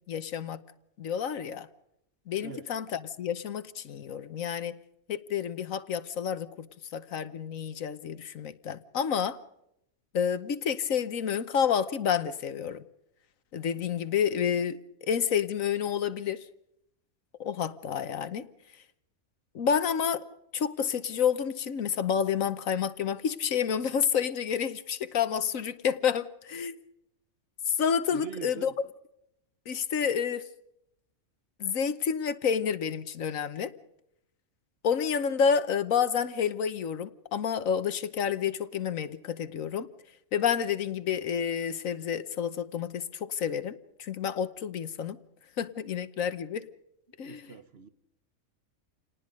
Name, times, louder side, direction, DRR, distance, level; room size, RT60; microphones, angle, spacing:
voice 1, 0.1-0.6 1.0-1.7 2.3-4.8 5.1-6.7 6.9-9.4 10.1-12.8 13.5-16.4 17.4-18.5 19.5-20.2 20.5-26.7 27.7-28.7 29.7-30.5 31.6-33.7 34.8-39.9 40.3-45.2 45.6-46.7 47.2-47.5, left 7 dB, 70° left, 1.4 m, -29 dB
voice 2, 28.1-28.7 47.2-47.9, right 6 dB, 50° right, 1.4 m, -42 dB
28.5 x 19.0 x 5.3 m
omnidirectional pair, 1.5 m